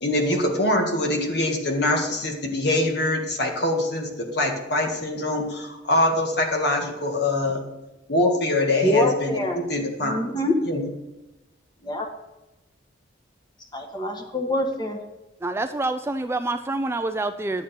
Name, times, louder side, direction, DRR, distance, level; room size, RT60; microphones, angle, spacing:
voice 1, 0.0-7.6 8.1-10.2 10.6-10.9, left 1 dB, 60° left, 2 dB, 1.7 m, -24 dB
voice 2, 8.8-9.6 10.0-10.5 11.8-12.1 13.7-15.0, left 1 dB, 25° left, 3 dB, 1.2 m, -25 dB
voice 3, 15.4-17.6, right 2 dB, 15° right, 9 dB, 0.3 m, -27 dB
11.0 x 7.6 x 4.4 m, 0.99 s
head